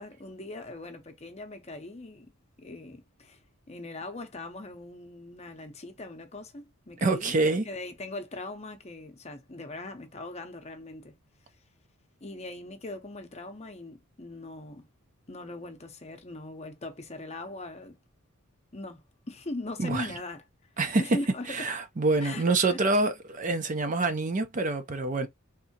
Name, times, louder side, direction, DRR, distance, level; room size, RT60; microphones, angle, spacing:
voice 1, 0.0-2.3 2.6-3.4 3.7-11.1 12.2-14.9 15.3-18.0 18.7-20.4 21.0-21.7 22.2-22.4 22.7-22.8, left 2 dB, 30° left, 0.7 m, -40 dB
voice 2, 7.0-7.7 19.8-20.1 20.8-21.0 21.5-25.3, right 3 dB, 35° right, 0.5 m, -26 dB
3.6 x 2.7 x 2.7 m
head